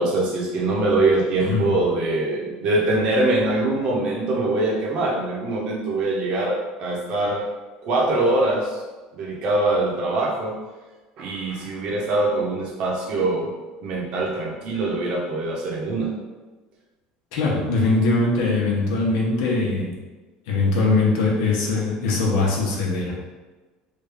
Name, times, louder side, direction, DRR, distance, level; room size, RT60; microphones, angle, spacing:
voice 1, 0.0-7.4 7.8-8.8 9.1-10.5 11.2-13.5 13.8-16.1, right 2 dB, 45° right, -2 dB, 0.9 m, -23 dB
voice 2, 1.4-1.7 17.3-19.9 20.5-23.2, left 3 dB, 80° left, -2 dB, 1.0 m, -21 dB
3.3 x 2.6 x 3.5 m, 1.2 s
cardioid pair, 150°, 2 cm